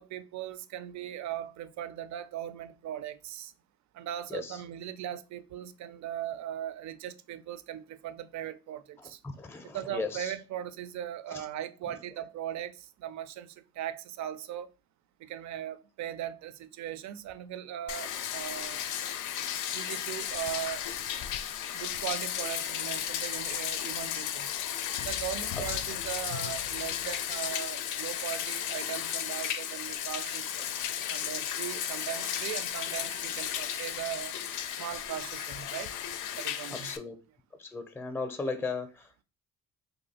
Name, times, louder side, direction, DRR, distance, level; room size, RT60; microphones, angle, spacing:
voice 1, 0.0-3.5 3.9-9.2 9.7-14.7 15.2-18.9 19.7-20.9 21.7-24.5 25.1-30.6 31.1-34.3 34.8-35.9 36.3-36.9, right 11 dB, 65° right, 0.4 m, -39 dB
voice 2, 4.3-4.6 9.0-10.3 11.3-11.5 25.6-25.9 36.8-37.1 37.6-39.2, left 4 dB, 10° left, 0.5 m, -37 dB
Bathtub (filling or washing), 17.9-37.0, left 10 dB, 80° left, 0.5 m, -34 dB
2.6 x 2.4 x 4.1 m
cardioid pair, 90°, 30 cm